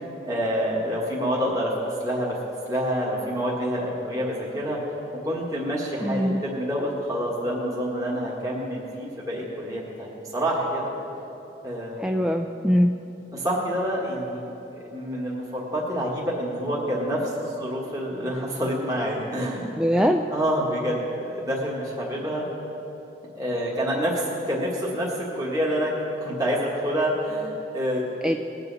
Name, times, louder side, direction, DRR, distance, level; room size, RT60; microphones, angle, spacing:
voice 1, 0.2-1.7 2.0-2.4 2.7-4.8 5.2-10.9 11.6-12.1 13.3-14.4 14.9-19.7 20.0-22.4 23.3-28.0, equal, 20° right, -5 dB, 1.6 m, -27 dB
voice 2, 6.0-6.4 12.0-12.9 19.8-20.2 28.2-28.4, equal, 5° right, 3 dB, 0.3 m, -22 dB
20.5 x 8.3 x 4.1 m, 3.0 s
head